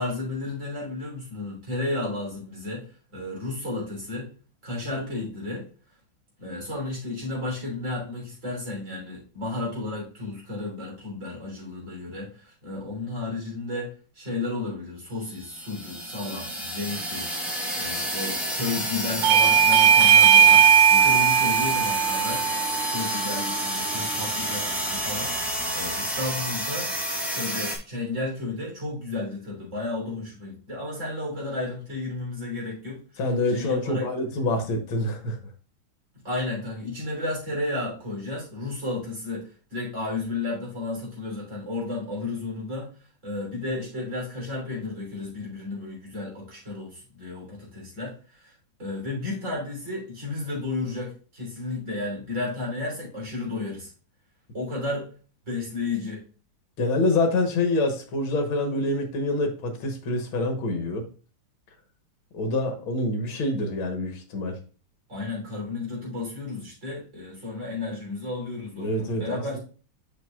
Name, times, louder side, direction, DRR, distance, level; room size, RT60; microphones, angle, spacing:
voice 1, 0.0-2.9 3.1-4.3 4.6-5.7 6.4-22.4 22.9-26.9 27.3-33.0 33.5-34.1 36.2-42.9 43.2-48.5 48.8-53.9 54.5-55.1 55.5-56.2 65.1-69.6, left 2 dB, 35° right, -3 dB, 3.8 m, -33 dB
sound 1, 15.3-27.8, equal, ahead, 1.3 m, -30 dB
Bell / Doorbell, 19.2-24.4, right 8 dB, 70° right, 1.2 m, -19 dB
voice 2, 33.2-35.4 56.8-61.1 62.3-64.6 68.8-69.6, left 2 dB, 70° left, 5 dB, 2.0 m, -26 dB
6.9 x 6.1 x 2.4 m, 0.37 s
omnidirectional pair, 2.3 m